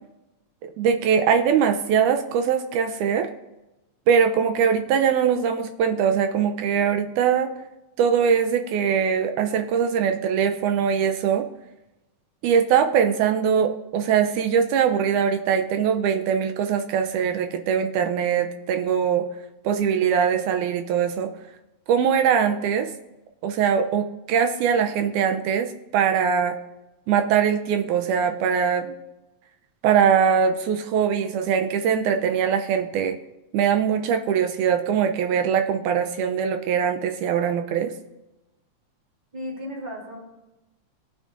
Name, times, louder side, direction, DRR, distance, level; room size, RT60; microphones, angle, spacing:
voice 1, 0.8-3.3 4.1-7.5 8.0-11.5 12.4-19.3 19.7-21.3 21.9-22.9 23.4-26.6 27.1-29.0 29.8-33.2 33.5-37.9, right 7 dB, 80° right, 6 dB, 2.0 m, -22 dB
voice 2, 39.3-40.2, equal, 10° right, -3 dB, 2.6 m, -34 dB
17.5 x 6.4 x 2.5 m, 1.0 s
omnidirectional pair, 3.5 m